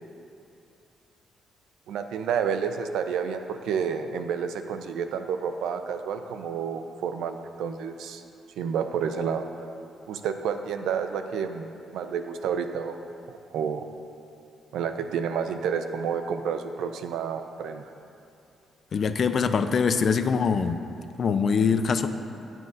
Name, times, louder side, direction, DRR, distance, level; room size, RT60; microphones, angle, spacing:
voice 1, 1.9-8.2 8.6-9.5 10.1-11.7 11.9-12.9 13.3-13.8 14.7-17.9, right 7 dB, 85° right, 7 dB, 0.4 m, -30 dB
voice 2, 18.9-20.8 21.2-22.1, left 6 dB, 50° left, 10 dB, 0.3 m, -23 dB
9.3 x 7.4 x 2.6 m, 2.6 s
cardioid pair, 90°, 0 cm